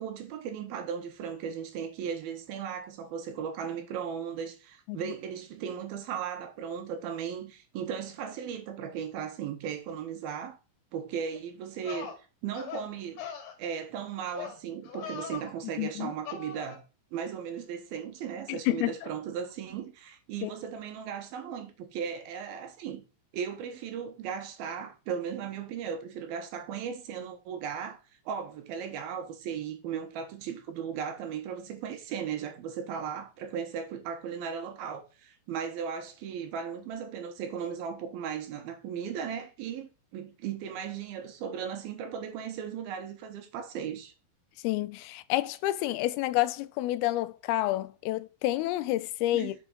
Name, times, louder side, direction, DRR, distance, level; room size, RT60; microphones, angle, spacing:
voice 1, 0.0-10.6 10.9-12.2 12.4-13.2 13.6-16.8 17.1-23.1 23.3-28.0 28.3-44.1 49.3-49.5, right 7 dB, 80° right, 2.9 m, -36 dB
sound 1, 11.3-11.4 11.8-12.2 12.5-12.9 13.2-13.5 14.3-14.6 14.8-15.5 16.2-16.8, left 7 dB, 65° left, 2.9 m, -40 dB
voice 2, 15.8-16.1 18.5-18.9 20.4-20.5 44.6-49.6, left 16 dB, 90° left, 2.5 m, -29 dB
6.7 x 4.8 x 3.9 m
omnidirectional pair, 4.3 m